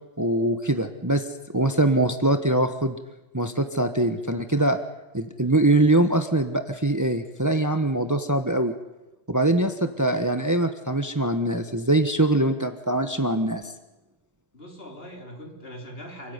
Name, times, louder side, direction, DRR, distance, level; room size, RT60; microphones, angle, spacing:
voice 1, 0.2-1.3 1.5-3.0 3.3-4.8 5.1-8.7 9.3-13.6, right 1 dB, 15° right, 8 dB, 1.3 m, -23 dB
voice 2, 14.5-16.3, equal, 55° left, 1 dB, 4.8 m, -41 dB
28.5 x 15.5 x 9.7 m, 1.0 s
omnidirectional pair, 1.2 m